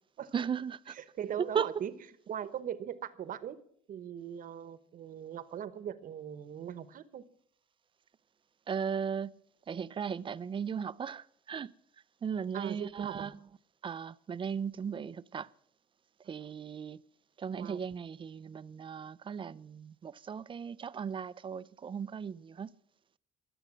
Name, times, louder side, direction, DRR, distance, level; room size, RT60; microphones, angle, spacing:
voice 1, 0.3-0.9 1.4-1.7 8.7-9.4 9.7-11.7 12.2-13.3 13.8-15.5 16.3-17.0 17.4-22.7, right 7 dB, 30° right, 0.5 m, -36 dB
voice 2, 0.9-1.9 2.3-3.6 3.9-7.2 12.5-13.3 16.4-16.5 17.5-17.8, right 9 dB, 55° right, 1.1 m, -40 dB
23.0 x 7.9 x 6.2 m
cardioid pair, 110°, 17 cm